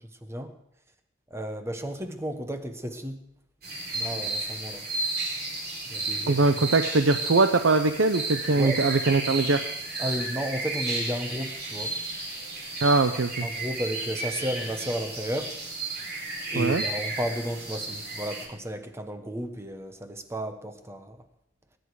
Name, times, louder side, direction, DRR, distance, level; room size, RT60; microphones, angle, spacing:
voice 1, 1.3-3.2 3.9-4.9 5.9-6.4 8.6-8.8 10.0-11.9 13.4-15.5 16.5-21.2, equal, 15° right, 7 dB, 1.2 m, -33 dB
sound 1, 3.6-18.5, right 2 dB, 55° right, 4.5 m, -33 dB
voice 2, 6.3-9.6 12.8-13.5 16.6-16.8, right 3 dB, 80° right, 8 dB, 0.7 m, -22 dB
20.0 x 10.5 x 4.8 m, 0.73 s
head